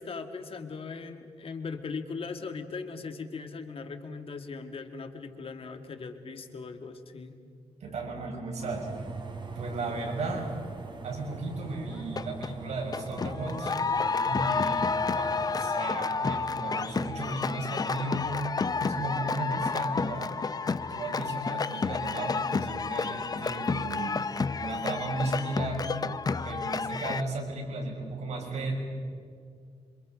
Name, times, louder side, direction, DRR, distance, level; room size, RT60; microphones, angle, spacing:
voice 1, 0.0-7.4, left 4 dB, 55° left, 6 dB, 2.1 m, -39 dB
voice 2, 7.8-9.1 9.5-10.5 11.0-13.7 14.3-18.5 18.8-20.3 20.9-25.8 26.4-28.7, right 2 dB, 70° right, 0 dB, 6.5 m, -35 dB
sound 1, 8.6-15.8, right 3 dB, 40° right, 3.9 m, -42 dB
sound 2, 12.0-12.5 12.9-27.2, left 4 dB, 35° left, 0.7 m, -30 dB
27.5 x 26.0 x 5.3 m, 2.2 s
cardioid pair, 90°, 12 cm